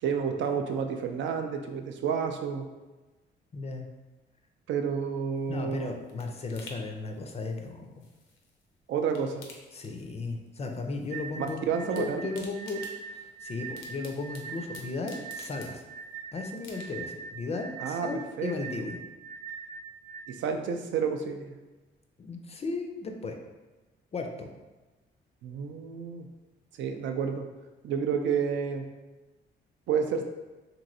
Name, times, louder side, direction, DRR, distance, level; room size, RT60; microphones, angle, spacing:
voice 1, 0.0-2.7 4.7-6.0 8.9-9.4 11.4-12.2 17.8-18.5 20.3-21.5 25.4-26.3 26.8-27.4 27.8-28.8 29.9-30.2, right 6 dB, 70° right, 5 dB, 0.4 m, -30 dB
voice 2, 3.5-3.9 5.5-7.9 9.7-11.6 12.0-15.8 16.3-19.0 22.2-23.4 24.1-24.5, left 3 dB, 30° left, 4 dB, 0.4 m, -35 dB
sound 1, 5.4-8.7 9.0-10.5 10.7-11.5 11.8-16.1 16.6-17.2 17.6-17.7, left 3 dB, 80° left, 0.6 m, -51 dB
sound 2, 11.1-20.2, right 5 dB, 45° right, 0.8 m, -42 dB
3.0 x 2.6 x 2.6 m, 1.2 s
cardioid pair, 90°, 20 cm